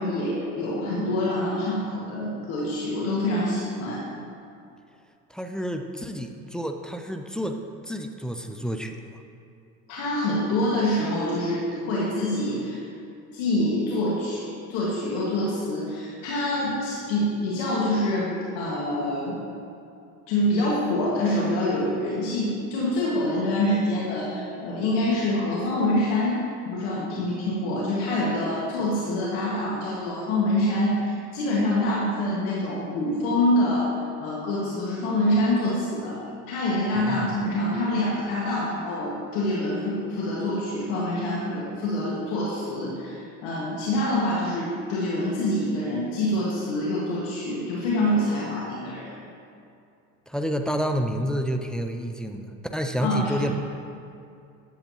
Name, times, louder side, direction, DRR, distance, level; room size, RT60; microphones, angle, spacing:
voice 1, 0.0-4.0 9.9-12.8 13.3-19.4 20.3-26.4 26.7-33.9 34.2-36.2 36.5-49.1 53.0-53.5, left 1 dB, 75° left, -6 dB, 1.8 m, -26 dB
voice 2, 5.3-9.0 37.1-37.3 50.3-53.5, equal, ahead, 5 dB, 0.3 m, -29 dB
10.5 x 7.8 x 2.9 m, 2.5 s
hypercardioid pair, 80°, 46 cm